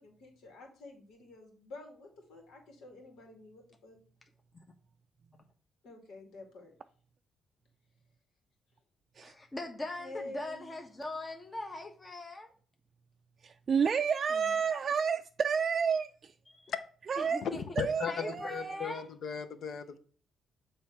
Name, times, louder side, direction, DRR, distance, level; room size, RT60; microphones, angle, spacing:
voice 1, 0.0-4.0 5.8-6.7 10.0-10.6, left 2 dB, 75° left, 2.3 m, -49 dB
voice 2, 9.2-12.5 14.3-14.4 16.5-16.7 17.2-17.6 18.1-19.1, left 2 dB, 25° left, 1.1 m, -41 dB
voice 3, 13.4-16.3 17.1-17.5 17.8-18.8, right 6 dB, 45° right, 0.4 m, -30 dB
voice 4, 17.4-20.0, left 7 dB, 60° left, 0.9 m, -36 dB
7.1 x 3.4 x 5.7 m
cardioid pair, 90°, 0 cm